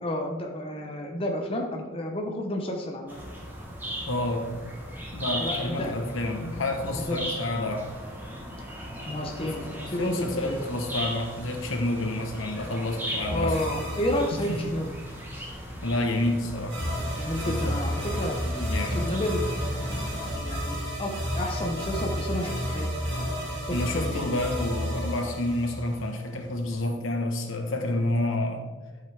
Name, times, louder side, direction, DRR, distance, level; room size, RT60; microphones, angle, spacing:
voice 1, 0.0-3.2 5.4-5.9 6.9-7.4 9.0-10.6 13.3-14.9 17.2-18.4 18.9-19.9 20.3-22.9 23.2-24.3, left 1 dB, 25° left, 2 dB, 0.7 m, -31 dB
sound 1, 3.1-20.4, equal, 10° right, 1.1 m, -38 dB
voice 2, 4.1-4.5 5.1-7.8 9.4-13.6 14.5-14.6 15.8-16.8 17.4-19.0 23.7-28.7, left 1 dB, 75° left, 3 dB, 1.1 m, -29 dB
sound 2, 13.2-15.1 16.7-26.4, equal, 55° right, 2.2 m, -31 dB
11.0 x 5.6 x 3.4 m, 1.4 s
head